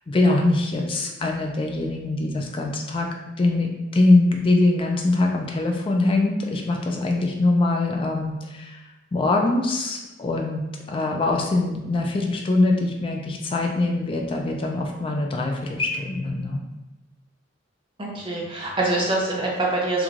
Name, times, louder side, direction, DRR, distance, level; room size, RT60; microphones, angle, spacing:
voice 1, 0.1-3.1 3.4-8.8 9.1-16.6, left 2 dB, 25° left, 1 dB, 0.3 m, -23 dB
voice 2, 18.0-20.0, right 2 dB, 25° right, -3 dB, 0.5 m, -24 dB
3.1 x 2.2 x 2.4 m, 1.0 s
head